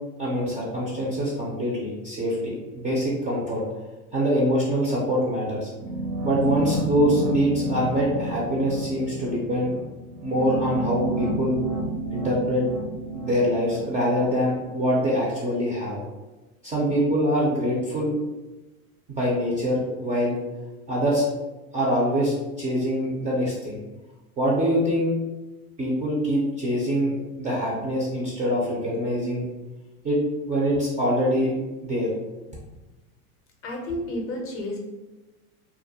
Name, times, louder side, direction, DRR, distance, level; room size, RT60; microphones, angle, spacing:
voice 1, 0.2-3.6 4.1-5.7 6.2-9.7 10.2-11.6 12.1-12.7 13.1-16.0 16.6-18.1 19.1-20.4 20.9-21.2 21.7-23.8 24.4-25.2 25.8-29.5 30.0-30.2 30.5-31.5 31.8-32.1, equal, 20° right, -5 dB, 0.4 m, -24 dB
sound 1, 5.8-14.7, right 2 dB, 70° right, 0.8 m, -31 dB
voice 2, 33.6-34.8, left 1 dB, 30° left, 0 dB, 0.5 m, -31 dB
2.3 x 2.1 x 2.7 m, 1.1 s
hypercardioid pair, 110°, 44 cm